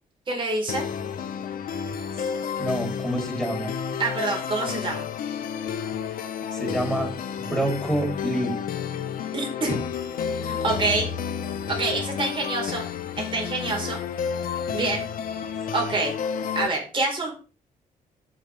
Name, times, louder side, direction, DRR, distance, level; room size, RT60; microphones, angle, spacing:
voice 1, 0.3-0.9 4.0-5.1 9.3-9.8 10.4-11.1 11.7-12.8 13.2-14.0 14.7-15.1 15.7-16.2 16.5-17.3, right 3 dB, 35° right, 0 dB, 4.5 m, -26 dB
sound 1, 0.7-16.7, left 7 dB, 80° left, 1.4 m, -31 dB
voice 2, 2.6-3.7 6.5-7.1 7.4-8.6, right 1 dB, 5° right, 0 dB, 3.6 m, -27 dB
15.0 x 6.3 x 3.5 m, 0.34 s
cardioid pair, 120°, 15 cm